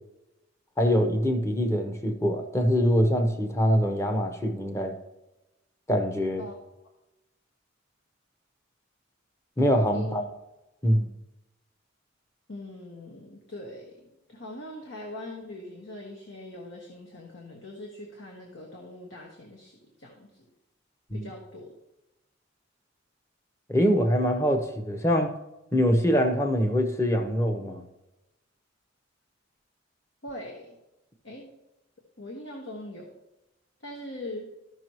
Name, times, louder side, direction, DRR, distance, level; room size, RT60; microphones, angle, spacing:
voice 1, 0.8-5.0 5.9-6.4 9.6-10.2 10.8-11.1 21.1-21.3 23.7-25.3 25.7-27.8, equal, 15° left, 5 dB, 0.9 m, -24 dB
voice 2, 9.9-10.2 12.5-20.5 21.1-21.8 30.2-30.8 31.2-31.5 32.2-33.2 33.8-34.5, left 1 dB, 70° left, -1 dB, 1.5 m, -42 dB
14.5 x 6.0 x 3.1 m, 0.95 s
head